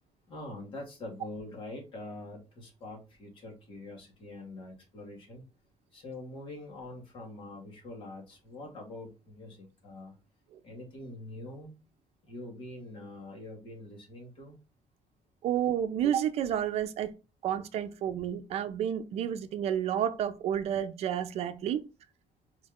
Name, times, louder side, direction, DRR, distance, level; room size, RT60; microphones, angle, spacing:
voice 1, 0.3-5.4 5.9-10.1 10.6-11.7 12.3-14.6, left 2 dB, 45° left, 2.2 m, -44 dB
voice 2, 15.4-17.2 17.4-21.8, right 10 dB, 65° right, 0.6 m, -30 dB
4.5 x 3.2 x 3.6 m
cardioid pair, 175°, 12 cm